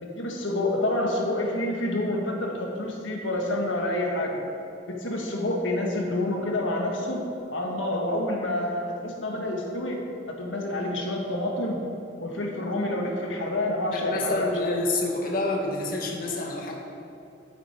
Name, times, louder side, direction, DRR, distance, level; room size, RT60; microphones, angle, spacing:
voice 1, 0.0-4.4 4.9-7.2 7.5-10.0 10.3-11.8 12.2-14.7, left 1 dB, 85° left, 0 dB, 1.7 m, -28 dB
voice 2, 13.9-16.7, left 2 dB, 50° left, 0 dB, 1.6 m, -28 dB
13.5 x 8.0 x 4.6 m, 2.6 s
head